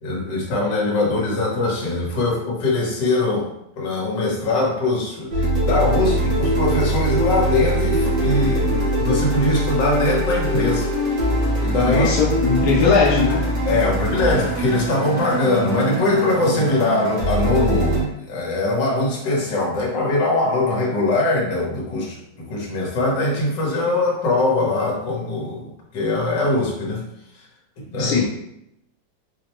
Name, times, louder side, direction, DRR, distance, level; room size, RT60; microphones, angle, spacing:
voice 1, 0.0-3.5 3.8-10.9 11.1-11.3 11.6-12.1 13.6-27.0 27.9-28.2, left 2 dB, 70° left, -2 dB, 1.6 m, -22 dB
sound 1, 5.3-18.0, right 1 dB, 70° right, 2.0 m, -22 dB
voice 2, 11.8-13.5 28.0-28.2, left 4 dB, 85° left, -4 dB, 1.4 m, -19 dB
4.9 x 2.1 x 2.9 m, 0.79 s
omnidirectional pair, 2.1 m